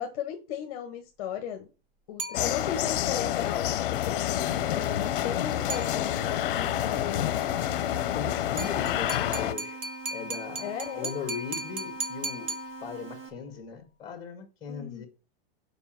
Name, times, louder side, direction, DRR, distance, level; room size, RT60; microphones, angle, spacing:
voice 1, 0.0-1.7 2.1-7.5 10.6-11.1 14.7-15.1, left 9 dB, 40° left, 1.0 m, -36 dB
sound 1, 2.2-3.0 5.7-6.5 8.6-13.3, right 2 dB, 30° right, 1.1 m, -37 dB
sound 2, 2.3-9.5, left 12 dB, 60° left, 0.7 m, -28 dB
sound 3, 4.3-13.3, right 7 dB, 75° right, 3.1 m, -44 dB
voice 2, 8.1-9.8 10.1-12.5 12.8-15.1, left 6 dB, 15° left, 1.6 m, -38 dB
7.1 x 5.1 x 5.8 m
supercardioid pair, 175°, 30 cm